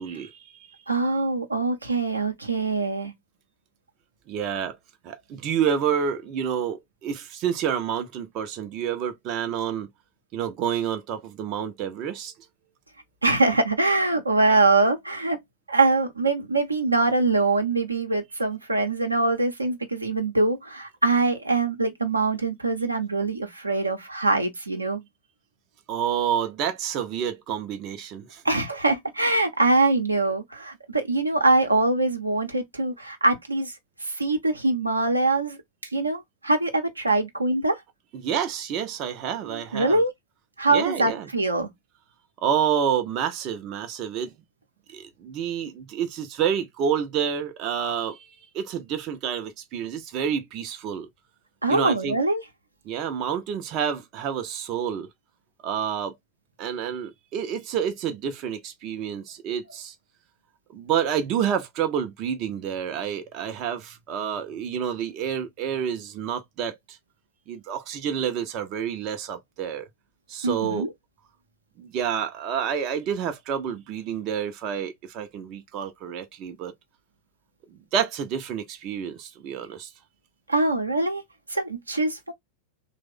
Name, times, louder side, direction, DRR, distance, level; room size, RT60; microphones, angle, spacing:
voice 1, 0.0-0.7 4.3-4.8 5.0-9.9 10.3-12.3 25.9-28.4 38.1-40.0 40.7-41.3 42.4-44.3 44.9-51.1 51.7-52.2 52.9-55.1 55.6-56.2 56.6-59.9 60.7-67.0 67.5-69.9 70.3-70.9 71.8-76.7 77.7-79.9, right 8 dB, 40° right, 0.5 m, -29 dB
voice 2, 0.9-3.1 13.2-15.4 15.7-25.0 28.4-33.7 34.0-35.6 35.9-37.8 39.4-40.1 40.6-41.7 51.6-52.4 70.4-70.9 80.5-81.2 81.5-82.3, right 2 dB, 80° right, 0.7 m, -23 dB
3.1 x 2.0 x 3.4 m
figure-of-eight pair, 90°, 0 cm